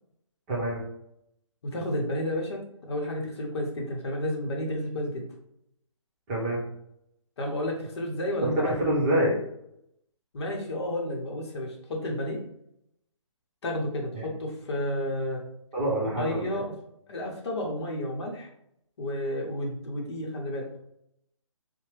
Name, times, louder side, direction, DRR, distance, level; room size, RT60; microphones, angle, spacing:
voice 1, 0.5-0.8 6.3-6.6 8.4-9.3 14.1-14.2 15.7-16.6, right 1 dB, 20° right, -5 dB, 0.9 m, -26 dB
voice 2, 1.6-5.3 7.4-8.7 10.3-12.4 13.6-15.4 16.2-16.7 17.1-18.5 19.0-20.8, left 1 dB, 55° left, 0 dB, 0.8 m, -31 dB
2.8 x 2.1 x 3.2 m, 0.76 s
hypercardioid pair, 150°, 17 cm